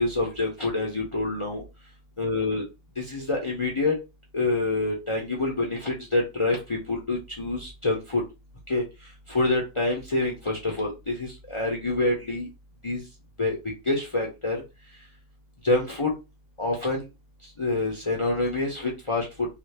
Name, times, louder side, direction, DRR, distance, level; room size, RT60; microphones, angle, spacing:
voice 1, 0.0-1.6 2.2-2.6 3.0-3.9 4.3-8.2 8.7-8.8 9.3-12.5 12.8-13.0 13.4-13.6 13.9-14.6 15.6-16.1 16.6-17.0 17.6-19.3, left 2 dB, 35° left, -1 dB, 0.6 m, -26 dB
2.8 x 2.6 x 3.2 m, 0.26 s
omnidirectional pair, 1.3 m